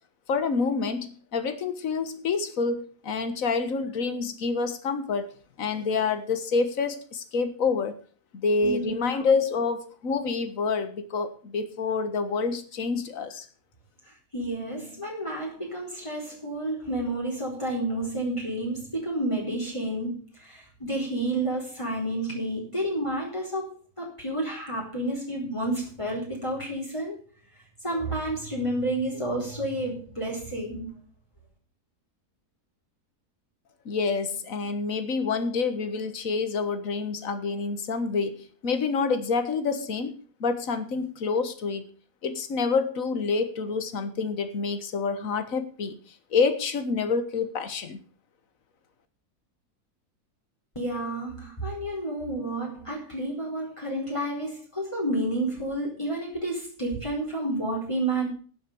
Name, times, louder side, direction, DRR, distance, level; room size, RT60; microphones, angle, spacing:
voice 1, 0.3-8.0 8.3-13.5 33.9-41.9 42.2-46.0 46.3-48.0, left 4 dB, 55° left, 9 dB, 1.8 m, -27 dB
voice 2, 8.6-9.2 14.1-27.2 27.8-31.0 50.7-58.3, right 1 dB, 20° left, -2 dB, 4.5 m, -30 dB
12.0 x 7.9 x 7.0 m, 0.40 s
omnidirectional pair, 1.7 m